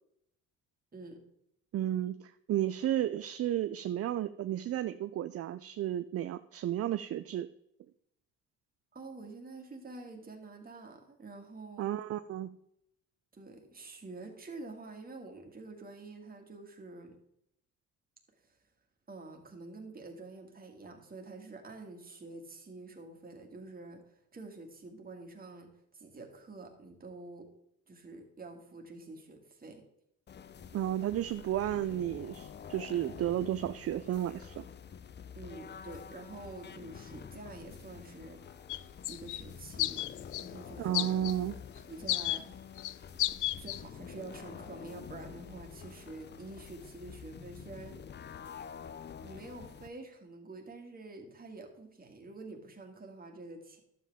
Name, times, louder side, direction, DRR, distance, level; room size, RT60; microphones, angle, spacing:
voice 1, 1.7-7.5 11.8-12.5 30.7-34.6 40.8-41.6, right 12 dB, 50° right, 11 dB, 0.5 m, -33 dB
voice 2, 8.9-11.9 13.3-17.2 19.1-27.5 27.9-29.8 35.3-38.6 39.1-40.1 40.4-41.3 41.7-42.6 43.6-48.0 49.2-53.8, right 3 dB, 30° right, 3 dB, 2.1 m, -47 dB
sound 1, 30.3-49.9, left 7 dB, 35° left, 0.5 m, -48 dB
sound 2, 38.7-38.8 39.0-39.4 39.8-40.5 40.9-41.3 42.1-42.4 42.8-42.9 43.2-43.8, left 16 dB, 80° left, 0.5 m, -32 dB
11.5 x 7.5 x 3.6 m, 0.76 s
cardioid pair, 90°, 30 cm